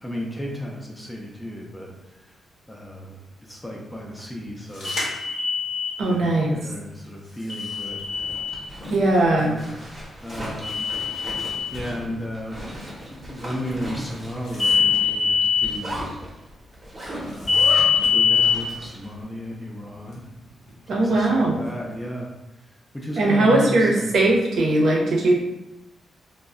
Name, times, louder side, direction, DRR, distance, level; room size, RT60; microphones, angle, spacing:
voice 1, 0.0-1.9 2.7-3.2 3.5-5.0 6.0-8.0 9.4-9.7 10.2-10.9 11.7-12.6 13.1-16.0 17.2-17.7 18.1-20.2 20.9-22.3 22.9-24.2, equal, 10° left, -1 dB, 0.4 m, -34 dB
sound 1, 4.8-5.9 7.5-8.6 10.6-11.7 14.5-15.7 17.5-18.5, left 6 dB, 60° left, 0.7 m, -22 dB
voice 2, 6.0-6.6 8.9-9.5 20.9-21.6 23.2-25.3, right 2 dB, 65° right, -2 dB, 0.6 m, -19 dB
Zipper (clothing), 7.9-19.1, equal, 20° right, 0.7 m, -37 dB
2.1 x 2.0 x 3.5 m, 0.95 s
wide cardioid pair, 145°, 0 cm